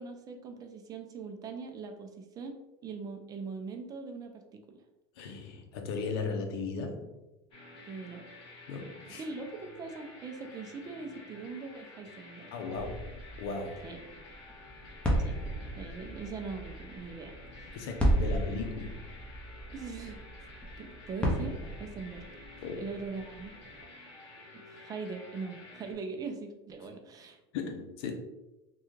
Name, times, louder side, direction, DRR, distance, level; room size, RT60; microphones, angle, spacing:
voice 1, 0.0-2.6 2.8-4.6 7.9-8.2 9.1-12.5 13.8-14.0 15.2-15.3 15.8-17.8 19.7-20.2 20.8-22.3 22.8-23.6 24.5-27.4, right 4 dB, 30° right, 4 dB, 0.4 m, -41 dB
voice 2, 5.2-7.1 8.7-9.2 12.5-13.0 13.4-13.8 17.7-19.0 22.6-22.9 27.5-28.1, left 4 dB, 75° left, 5 dB, 0.6 m, -36 dB
sound 1, 7.5-25.9, left 2 dB, 40° left, 1.1 m, -51 dB
sound 2, 12.7-23.8, equal, 10° left, 0.8 m, -35 dB
3.4 x 2.3 x 3.1 m, 0.99 s
supercardioid pair, 125°, 13 cm